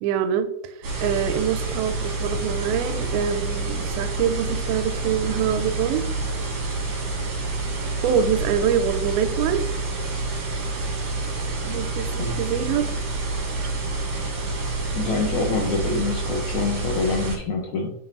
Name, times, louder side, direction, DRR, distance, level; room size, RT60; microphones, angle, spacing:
voice 1, 0.0-6.1 8.0-9.6 11.6-12.9 13.6-13.7, right 8 dB, 85° right, 9 dB, 2.4 m, -25 dB
sound 1, 0.8-17.4, right 3 dB, 55° right, 2.1 m, -28 dB
voice 2, 14.9-17.9, left 3 dB, 75° left, 0 dB, 1.8 m, -26 dB
7.2 x 6.0 x 2.6 m, 0.73 s
omnidirectional pair, 4.4 m